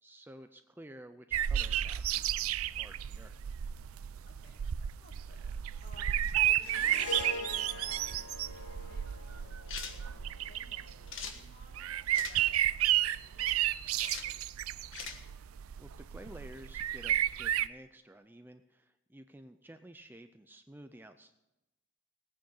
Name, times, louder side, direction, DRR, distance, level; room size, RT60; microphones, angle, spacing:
voice 1, 0.0-3.4 15.8-21.3, right 1 dB, 10° right, 7 dB, 0.5 m, -52 dB
sound 1, 1.3-17.7, right 12 dB, 80° right, 0.4 m, -32 dB
voice 2, 4.2-9.0 9.3-14.2, left 2 dB, 45° left, 1 dB, 2.6 m, -60 dB
Harp, 6.6-11.1, left 2 dB, 90° left, 1.1 m, -43 dB
sound 2, 9.7-10.0 11.1-11.4 12.1-12.4 14.0-14.3 14.9-15.2, left 6 dB, 60° left, 1.4 m, -41 dB
18.5 x 9.1 x 5.5 m, 0.96 s
head